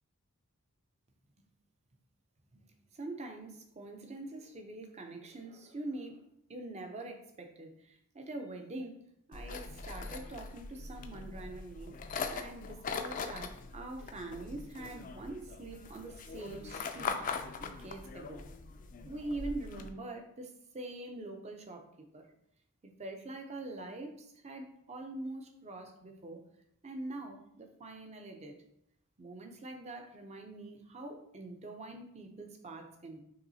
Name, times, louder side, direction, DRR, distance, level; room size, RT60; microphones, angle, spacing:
voice 1, 2.9-6.2 6.5-9.0 9.3-11.9 12.3-18.4 19.0-22.3 22.8-26.4 26.8-28.5 29.2-33.2, right 2 dB, 30° right, 4 dB, 0.5 m, -44 dB
sound 1, 9.3-19.9, left 4 dB, 35° left, 0.3 m, -41 dB
5.7 x 3.1 x 2.7 m, 0.75 s
head